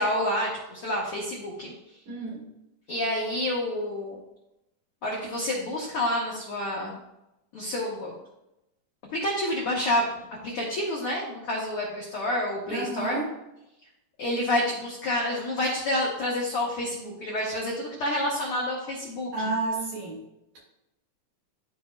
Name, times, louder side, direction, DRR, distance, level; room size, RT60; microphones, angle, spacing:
voice 1, 0.0-1.7 2.9-4.1 5.0-7.0 7.5-8.1 9.1-10.0 10.4-13.2 14.2-19.3, left 1 dB, 70° left, -4 dB, 1.4 m, -28 dB
voice 2, 2.1-2.4 12.7-13.3 19.3-20.2, right 2 dB, 60° right, -4 dB, 3.1 m, -30 dB
12.5 x 4.4 x 2.2 m, 0.89 s
omnidirectional pair, 4.0 m